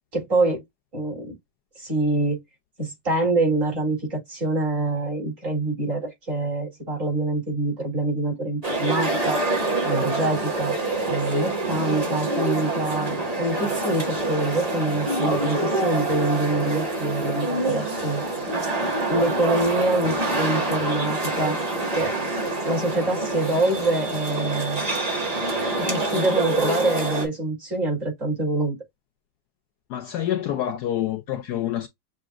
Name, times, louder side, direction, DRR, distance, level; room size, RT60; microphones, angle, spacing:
voice 1, 0.1-0.6 0.9-1.3 1.8-2.4 2.8-9.4 9.8-10.7 11.1-18.2 19.1-21.6 21.9-22.2 22.7-24.8 25.8-28.7, right 2 dB, 40° right, 3.6 m, -25 dB
sound 1, 8.6-27.3, right 2 dB, 20° right, 1.6 m, -26 dB
voice 2, 29.9-31.9, left 11 dB, 70° left, 1.0 m, -27 dB
6.7 x 2.8 x 2.4 m
omnidirectional pair, 2.0 m